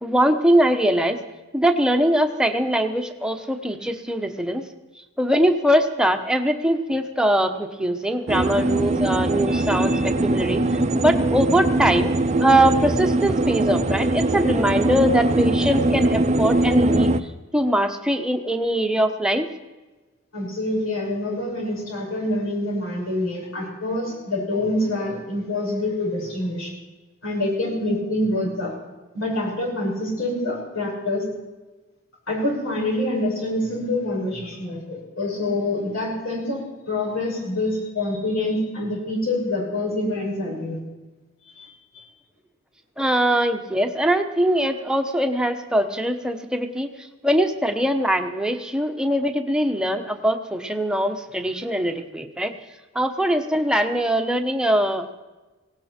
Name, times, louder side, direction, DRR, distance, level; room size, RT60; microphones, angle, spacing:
voice 1, 0.0-1.2 1.5-4.6 5.2-12.1 12.4-17.1 17.5-19.5 43.0-52.5 52.9-55.1, right 1 dB, 5° right, 5 dB, 1.0 m, -22 dB
sound 1, 8.3-17.2, right 2 dB, 35° right, 0.6 m, -21 dB
voice 2, 20.3-26.7 27.2-28.7 29.1-31.2 32.3-40.8 41.4-42.0, left 1 dB, 85° left, -3 dB, 6.5 m, -26 dB
18.0 x 17.5 x 4.4 m, 1.2 s
head